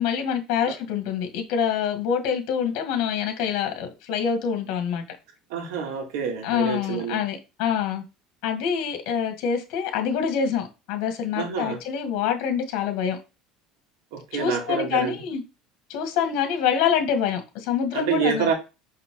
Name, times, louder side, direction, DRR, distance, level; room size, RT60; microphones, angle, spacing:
voice 1, 0.0-5.0 6.4-8.0 8.4-13.2 14.3-15.4 15.9-18.5, left 7 dB, 70° left, 1.9 m, -26 dB
voice 2, 5.5-7.2 11.4-11.8 14.1-15.2 17.9-18.5, right 7 dB, 80° right, 2.5 m, -27 dB
5.8 x 5.6 x 3.8 m
cardioid pair, 140°, 0 cm